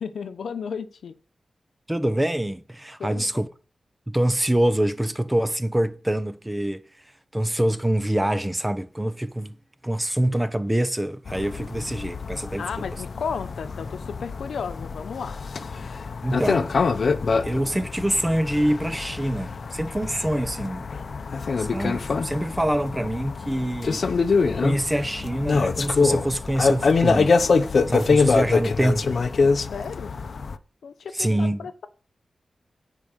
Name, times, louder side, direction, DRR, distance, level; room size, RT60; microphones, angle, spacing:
voice 1, 0.0-1.1 3.0-3.4 12.6-15.4 29.7-30.2 30.8-31.9, left 6 dB, 90° left, 0.9 m, -34 dB
voice 2, 1.9-3.5 4.1-6.8 7.3-9.6 9.8-12.7 16.2-16.7 17.4-20.9 21.6-24.0 24.6-27.4 27.9-29.2 31.1-31.7, right 1 dB, 10° right, 0.8 m, -25 dB
sound 1, 11.3-30.6, left 4 dB, 60° left, 0.7 m, -25 dB
9.9 x 4.8 x 7.4 m
wide cardioid pair, 95°, 0 cm